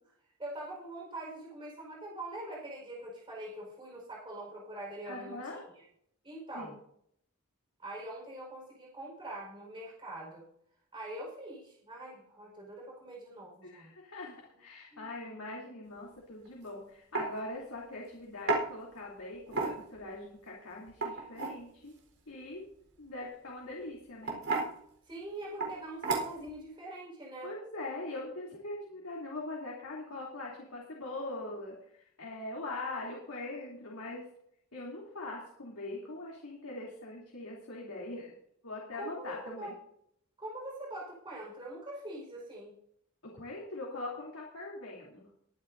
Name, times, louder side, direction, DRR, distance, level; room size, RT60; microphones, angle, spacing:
voice 1, 0.4-5.4 5.7-5.8 6.2-6.8 7.8-10.4 10.9-13.9 14.9-15.1 25.0-27.5 39.0-39.7 40.4-42.7, right 1 dB, 25° right, -4 dB, 5.0 m, -43 dB
voice 2, 5.0-5.6 6.5-6.8 13.6-21.9 22.3-22.6 23.0-24.4 27.4-34.3 34.7-38.3 38.6-39.7 43.2-45.3, left 2 dB, 90° left, -3 dB, 3.2 m, -42 dB
sound 1, 16.5-16.6 17.1-17.3 18.5-18.7 19.5-20.0 20.9-21.6 23.2-23.5 24.2-24.7 25.6-25.7 26.0-26.5, right 3 dB, 75° right, 4.3 m, -31 dB
22.0 x 10.5 x 2.7 m, 0.70 s
head